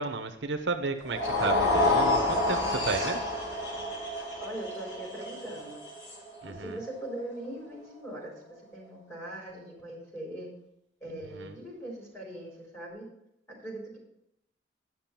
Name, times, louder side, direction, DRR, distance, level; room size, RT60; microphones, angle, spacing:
voice 1, 0.0-3.2 6.4-6.8 11.3-11.5, right 3 dB, 70° right, 5 dB, 0.9 m, -33 dB
sound 1, 1.0-7.3, left 2 dB, 65° left, 4.0 m, -29 dB
voice 2, 4.4-5.8 6.4-10.5 11.0-13.1 13.5-14.0, right 1 dB, 15° left, -2 dB, 4.0 m, -41 dB
11.0 x 6.1 x 5.9 m, 0.80 s
head